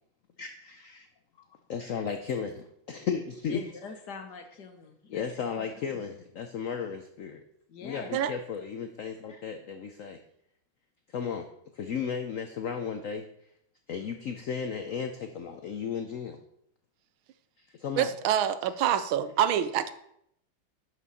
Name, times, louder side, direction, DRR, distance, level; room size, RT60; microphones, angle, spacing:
voice 1, 0.4-1.1 1.7-3.6 5.1-7.4 7.8-10.2 11.1-11.5 11.7-13.2 13.9-16.4 17.6-18.1, left 6 dB, 80° left, 0.7 m, -34 dB
voice 2, 3.5-5.3 5.5-5.7 5.9-6.0 7.7-8.1, left 5 dB, 60° left, 1.6 m, -43 dB
voice 3, 18.0-19.9, right 10 dB, 80° right, 1.5 m, -26 dB
11.0 x 6.3 x 4.1 m
omnidirectional pair, 2.2 m